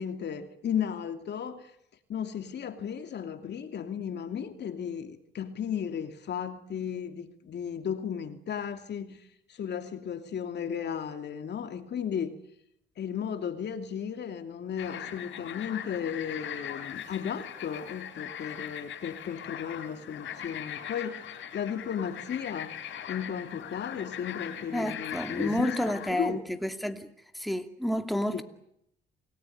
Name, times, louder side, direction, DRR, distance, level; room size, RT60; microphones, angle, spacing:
voice 1, 0.0-1.7 2.1-9.2 9.5-12.4 13.0-21.2 21.5-22.7 23.1-26.4 28.3-28.4, left 8 dB, 60° left, 2.7 m, -35 dB
sound 1, 14.8-26.1, left 9 dB, 75° left, 4.4 m, -40 dB
voice 2, 24.7-27.1 27.3-28.4, equal, ahead, 2.5 m, -30 dB
29.0 x 19.5 x 9.4 m
cardioid pair, 90°, 20 cm